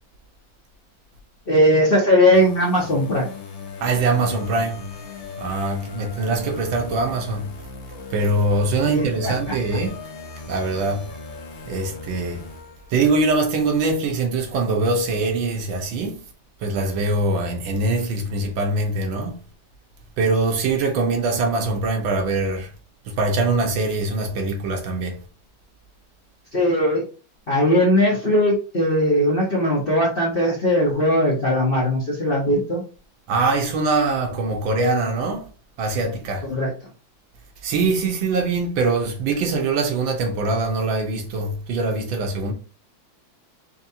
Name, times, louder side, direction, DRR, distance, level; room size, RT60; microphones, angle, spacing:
voice 1, 1.5-3.3 8.8-9.5 26.5-27.0 27.5-32.8 36.5-36.7, equal, 40° left, 0.9 m, -19 dB
sound 1, 2.3-13.1, left 4 dB, 75° left, 0.6 m, -38 dB
voice 2, 3.8-4.8 5.4-7.5 8.1-10.0 10.5-11.1 11.7-12.4 12.9-16.3 16.6-19.4 20.2-22.7 23.1-25.2 33.3-35.5 35.8-36.5 37.6-42.5, right 3 dB, 75° right, 1.6 m, -23 dB
4.5 x 3.2 x 2.7 m
omnidirectional pair, 2.2 m